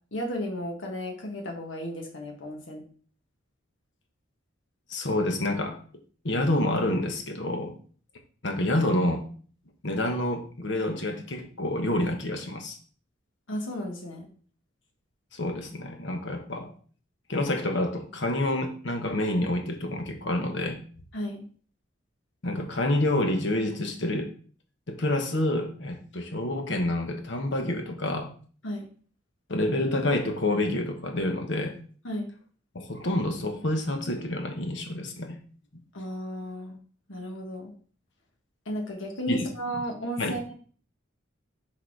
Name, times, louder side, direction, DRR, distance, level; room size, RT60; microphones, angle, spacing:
voice 1, 0.1-2.8 13.5-14.3 21.1-21.4 28.6-28.9 32.0-32.3 35.9-36.8 37.1-37.7 38.6-40.5, equal, 80° left, 1 dB, 1.4 m, -34 dB
voice 2, 4.9-5.8 6.2-7.8 8.4-9.3 9.8-12.8 15.3-16.7 17.3-20.8 22.4-24.3 24.9-28.3 29.5-31.8 32.7-35.4 35.7-35.8 39.3-39.4 39.7-39.8 40.2-40.4, left 1 dB, 65° left, 4 dB, 1.1 m, -28 dB
6.4 x 4.1 x 4.7 m, 0.43 s
head